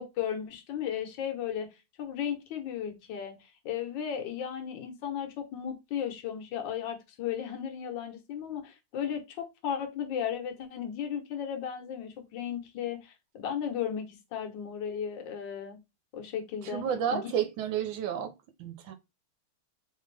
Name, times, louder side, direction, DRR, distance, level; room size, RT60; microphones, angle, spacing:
voice 1, 0.0-1.7 2.0-15.8 16.1-16.8 17.1-17.3, left 8 dB, 65° left, 1.5 m, -35 dB
voice 2, 16.6-18.3 18.6-18.9, right 8 dB, 75° right, 1.2 m, -31 dB
3.6 x 3.4 x 3.2 m
omnidirectional pair, 2.4 m